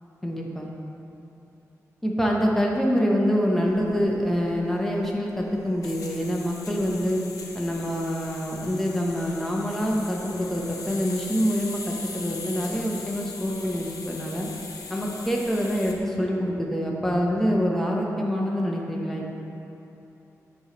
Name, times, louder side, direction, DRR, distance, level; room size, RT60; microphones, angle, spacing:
voice 1, 0.2-0.7 2.0-7.2 7.5-14.5 14.9-19.3, equal, 5° left, -2 dB, 0.9 m, -26 dB
sound 1, 3.6-16.0, left 4 dB, 85° left, 0.8 m, -40 dB
9.3 x 3.3 x 5.1 m, 3.0 s
wide cardioid pair, 115°, 6 cm